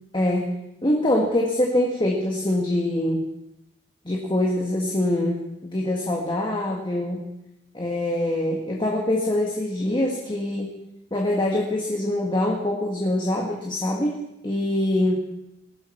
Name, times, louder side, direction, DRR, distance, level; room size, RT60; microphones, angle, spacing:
voice 1, 0.1-0.5 0.8-3.3 4.1-7.3 7.7-10.7 11.1-15.2, left 1 dB, 25° left, -1 dB, 1.8 m, -24 dB
19.5 x 13.0 x 4.5 m, 0.88 s
head